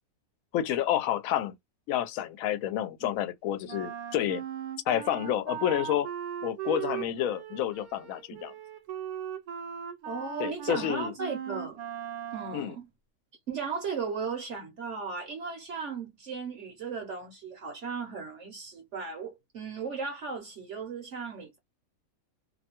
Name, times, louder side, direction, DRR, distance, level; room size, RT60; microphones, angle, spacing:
voice 1, 0.5-1.5 1.9-4.4 4.9-6.1 6.4-8.5 10.4-11.1 12.5-12.8, left 11 dB, 70° left, 0.9 m, -29 dB
Wind instrument woodwind instrument, 3.7-12.7, right 10 dB, 75° right, 1.2 m, -38 dB
voice 2, 10.0-11.8 12.3-12.9 13.5-21.6, right 5 dB, 60° right, 0.9 m, -36 dB
2.6 x 2.2 x 2.8 m
omnidirectional pair, 1.6 m